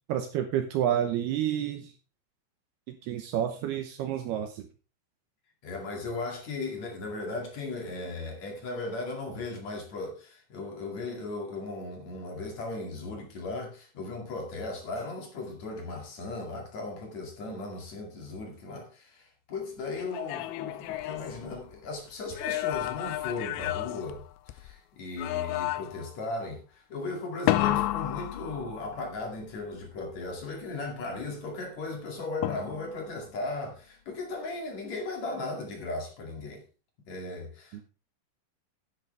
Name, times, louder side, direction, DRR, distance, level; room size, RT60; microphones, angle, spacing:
voice 1, 0.1-1.9 2.9-4.6 37.7-37.8, right 10 dB, 80° right, 2.3 m, -29 dB
voice 2, 5.6-36.6 37.1-37.8, left 3 dB, 45° left, 2.7 m, -37 dB
sound 1, 20.0-21.9 22.3-24.7 25.2-26.1 27.5-29.1 32.4-33.1, left 15 dB, 85° left, 2.5 m, -31 dB
11.0 x 10.0 x 3.4 m
omnidirectional pair, 5.8 m